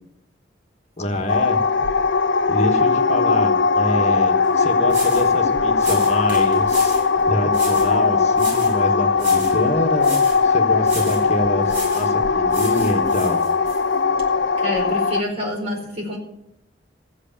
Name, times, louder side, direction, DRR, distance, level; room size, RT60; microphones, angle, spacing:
voice 1, 1.0-1.6 2.5-7.0 7.3-13.4, left 1 dB, 40° left, 4 dB, 1.4 m, -26 dB
sound 1, 1.3-15.2, left 5 dB, 70° left, 0.6 m, -19 dB
sound 2, 4.4-4.5 4.9-5.3 5.8-7.1 7.5-7.9 8.3-8.8 9.2-9.6 10.0-10.4 10.8-11.3 11.7-12.1 12.5-13.8, right 2 dB, 70° right, 7.3 m, -34 dB
voice 2, 14.6-16.2, left 1 dB, 35° right, -1 dB, 4.6 m, -27 dB
14.5 x 8.3 x 7.0 m, 0.81 s
head